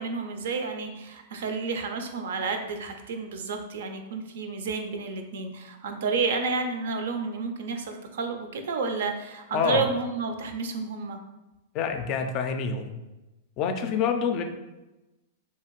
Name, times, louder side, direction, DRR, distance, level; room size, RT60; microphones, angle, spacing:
voice 1, 0.0-11.2, right 4 dB, 70° right, 6 dB, 0.4 m, -30 dB
voice 2, 9.5-9.8 11.7-13.0 13.6-14.4, left 6 dB, 40° left, 6 dB, 0.4 m, -27 dB
2.7 x 2.4 x 2.9 m, 1.0 s
hypercardioid pair, 110°, 0 cm